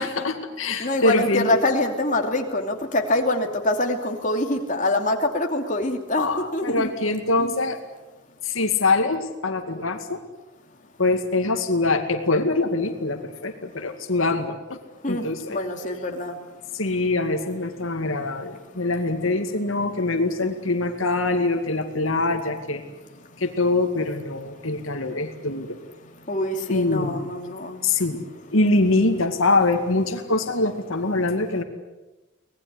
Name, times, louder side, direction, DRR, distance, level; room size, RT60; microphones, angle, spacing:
voice 1, 0.0-1.6 6.2-7.8 8.4-10.2 11.0-14.8 15.1-15.6 16.7-22.8 23.4-25.8 26.7-27.3 27.8-31.6, left 2 dB, 80° left, 6 dB, 2.3 m, -24 dB
voice 2, 0.8-6.3 6.5-6.9 7.4-7.5 15.0-16.4 26.3-27.8, left 1 dB, 40° left, 2 dB, 2.8 m, -25 dB
25.0 x 19.5 x 9.9 m, 1.1 s
head